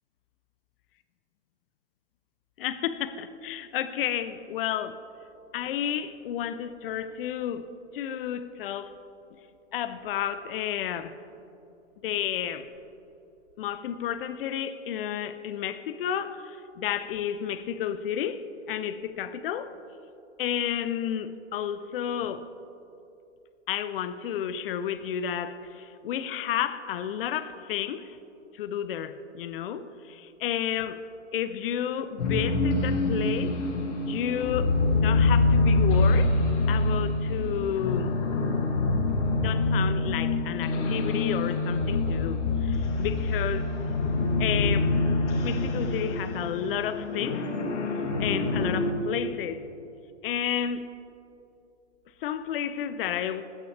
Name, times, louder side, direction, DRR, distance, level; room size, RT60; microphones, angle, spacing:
voice 1, 2.6-5.0 5.5-7.7 7.9-8.9 9.7-11.1 12.0-12.7 13.6-19.7 20.4-22.5 23.7-28.2 28.6-31.0 31.3-33.6 34.1-36.3 36.7-38.2 39.4-43.7 44.4-44.9 45.4-47.5 48.2-49.6 50.2-50.9 52.2-53.4, left 9 dB, 50° left, 13 dB, 0.4 m, -31 dB
sound 1, 32.2-48.9, left 3 dB, 75° left, 1.3 m, -25 dB
14.5 x 5.6 x 3.2 m, 2.8 s
hypercardioid pair, 150°, 36 cm